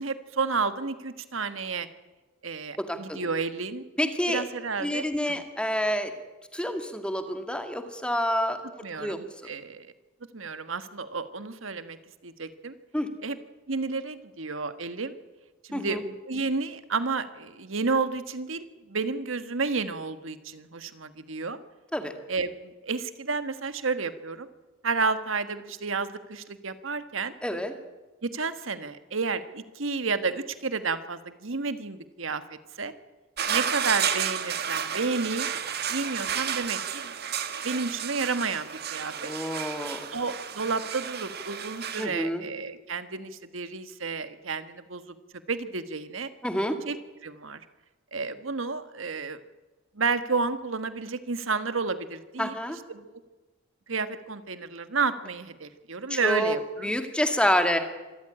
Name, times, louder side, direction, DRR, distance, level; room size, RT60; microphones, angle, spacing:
voice 1, 0.0-1.9 2.4-3.8 4.3-5.4 8.8-9.9 10.3-12.0 12.2-12.7 13.2-13.4 13.7-15.1 15.6-21.6 22.3-24.5 24.8-27.3 28.2-32.4 32.8-32.9 33.5-35.5 35.9-37.1 37.6-39.3 40.1-45.1 45.5-46.3 46.9-47.0 47.2-47.6 48.1-49.4 49.9-52.5 52.9-53.1 53.9-56.9, right 4 dB, 80° right, 11 dB, 1.5 m, -31 dB
voice 2, 2.8-3.3 4.0-4.4 4.8-6.1 6.5-8.6 8.9-9.2 12.9-13.1 15.7-16.0 21.9-22.1 27.4-27.7 39.2-40.1 42.0-42.4 46.4-46.8 52.4-52.8 56.1-56.6 56.8-57.8, equal, 5° left, 6 dB, 2.0 m, -28 dB
sound 1, 33.4-42.1, right 8 dB, 50° right, 1.7 m, -32 dB
25.5 x 14.0 x 10.0 m, 1.2 s
head